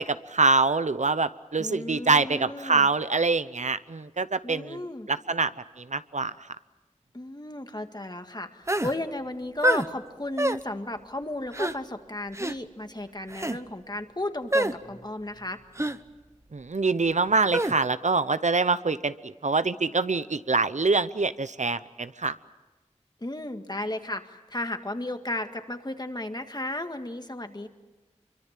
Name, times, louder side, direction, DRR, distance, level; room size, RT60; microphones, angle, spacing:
voice 1, 0.0-4.8 5.1-5.5 5.8-6.3 16.5-22.3, right 3 dB, 70° right, 13 dB, 0.8 m, -25 dB
voice 2, 1.6-2.9 4.4-5.1 7.1-15.6 23.2-27.7, left 1 dB, 35° left, 7 dB, 1.9 m, -34 dB
sound 1, 8.7-8.9 9.6-9.9 10.4-10.6 11.5-11.7 12.3-12.5 13.3-13.6 14.5-14.7 15.8-16.0 17.5-17.7, right 1 dB, 25° right, 1.0 m, -25 dB
26.0 x 24.0 x 7.5 m, 1.2 s
wide cardioid pair, 45°, 13 cm